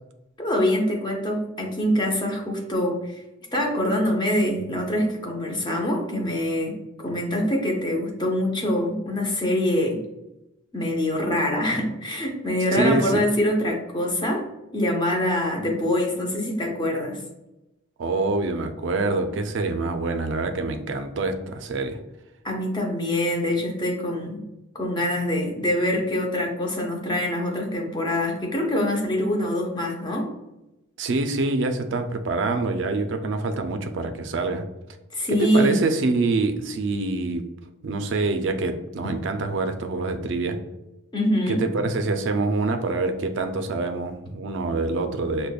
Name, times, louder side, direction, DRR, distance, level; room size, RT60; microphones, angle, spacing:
voice 1, 0.4-3.2 3.5-10.0 10.7-14.4 14.7-17.2 22.4-24.4 24.7-30.3 35.1-35.8 41.1-41.6, left 1 dB, 20° left, 0 dB, 0.5 m, -24 dB
voice 2, 12.7-13.1 18.0-22.0 31.0-34.6 35.3-37.4 37.8-40.6 41.5-45.5, right 3 dB, 60° right, 6 dB, 0.4 m, -25 dB
4.9 x 2.1 x 2.3 m, 0.94 s
head